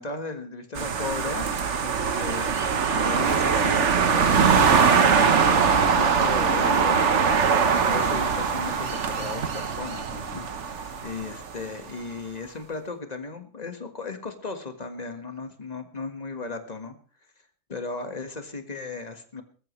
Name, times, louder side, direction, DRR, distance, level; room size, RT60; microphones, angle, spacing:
voice 1, 0.0-1.5 1.8-7.0 7.7-16.9 17.7-19.4, left 3 dB, 30° left, 6 dB, 1.7 m, -36 dB
sound 1, 0.8-11.5, right 6 dB, 55° right, 1.3 m, -22 dB
21.5 x 13.5 x 3.2 m, 0.39 s
omnidirectional pair, 1.5 m